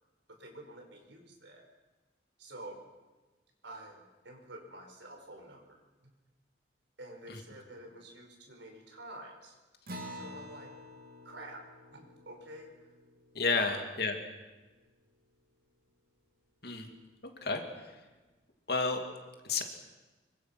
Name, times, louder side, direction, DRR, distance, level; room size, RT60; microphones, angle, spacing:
voice 1, 0.3-1.6 2.4-2.8 3.6-6.1 7.0-9.6 10.1-10.7 11.2-11.6 11.9-12.9 13.5-13.9, right 1 dB, 75° right, 2 dB, 5.2 m, -49 dB
Acoustic guitar, 9.9-14.7, equal, 50° right, 3.0 m, -49 dB
voice 2, 13.3-14.2 16.6-16.9 17.4-17.9 18.7-19.0 19.4-19.6, left 4 dB, 55° left, 4 dB, 2.6 m, -31 dB
25.5 x 23.5 x 6.0 m, 1.2 s
head